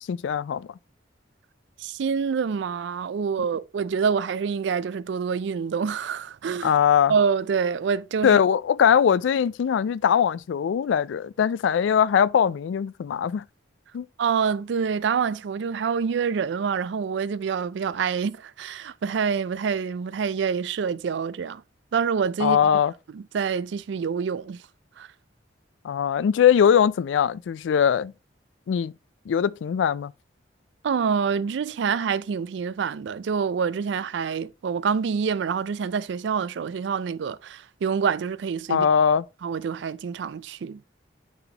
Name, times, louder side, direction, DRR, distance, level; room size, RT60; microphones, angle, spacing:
voice 1, 0.1-0.7 6.6-7.1 8.2-13.4 13.9-14.1 22.4-22.9 25.8-28.1 28.7-28.9 29.3-30.1 38.7-39.2, left 8 dB, 80° left, 0.3 m, -21 dB
voice 2, 1.8-6.7 7.1-8.4 14.2-21.6 21.9-22.6 23.1-24.6 25.0-25.1 30.8-38.9 39.4-40.8, right 6 dB, 70° right, 0.3 m, -26 dB
9.0 x 4.0 x 2.8 m
head